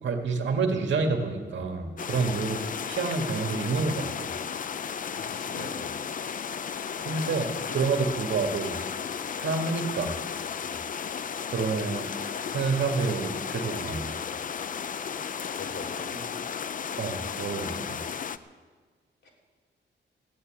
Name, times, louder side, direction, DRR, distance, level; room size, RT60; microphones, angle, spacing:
voice 1, 0.0-4.3 7.0-8.7 9.3-10.1 11.5-12.1 12.5-14.1 17.0-18.0, right 4 dB, 75° right, 4 dB, 1.9 m, -28 dB
sound 1, 2.0-18.4, left 7 dB, 45° left, 0.5 m, -34 dB
voice 2, 5.1-6.0 10.6-10.8 15.6-16.2 19.2-19.3, left 2 dB, 70° left, -2 dB, 4.0 m, -42 dB
15.5 x 10.0 x 8.8 m, 1.5 s
wide cardioid pair, 150°, 19 cm